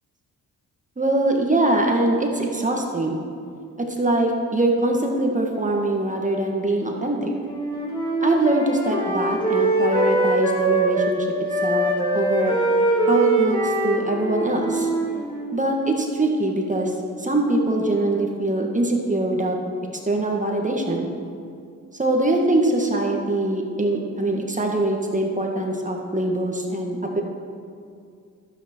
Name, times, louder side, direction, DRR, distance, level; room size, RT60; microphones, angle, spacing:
voice 1, 1.0-3.2 3.8-7.3 8.2-11.3 11.6-12.6 13.1-14.9 15.5-19.6 20.0-21.1 21.9-27.2, right 1 dB, 20° right, 1 dB, 1.8 m, -23 dB
Wind instrument woodwind instrument, 7.4-11.2 11.5-15.6, right 2 dB, 15° left, 2.9 m, -23 dB
12.0 x 9.1 x 4.5 m, 2.4 s
supercardioid pair, 65°, 35 cm